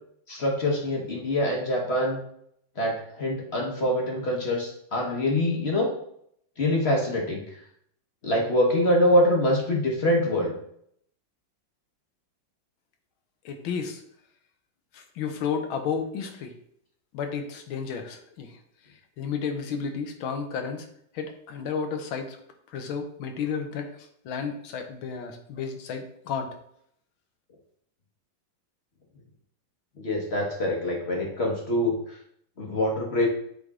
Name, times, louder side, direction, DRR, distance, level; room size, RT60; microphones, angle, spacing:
voice 1, 0.3-2.2 2.8-5.9 6.6-7.4 8.2-10.5 30.0-31.9 32.6-33.3, left 1 dB, 40° left, -1 dB, 1.1 m, -24 dB
voice 2, 13.4-14.0 14.9-16.5 17.1-18.6 19.2-20.9 21.1-22.4 22.7-23.9 24.2-26.5, left 6 dB, 80° left, 5 dB, 1.6 m, -32 dB
7.6 x 3.5 x 3.6 m, 0.69 s
omnidirectional pair, 2.2 m